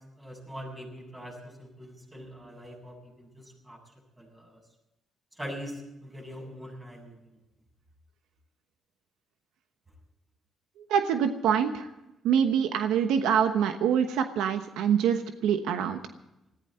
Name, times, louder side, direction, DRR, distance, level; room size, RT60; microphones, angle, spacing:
voice 1, 0.2-3.8 4.2-4.6 5.4-7.2, equal, 15° right, 1 dB, 7.4 m, -42 dB
voice 2, 10.9-11.9 12.2-16.0, right 8 dB, 90° right, 8 dB, 1.1 m, -25 dB
19.0 x 15.0 x 4.4 m, 0.91 s
cardioid pair, 90°, 0 cm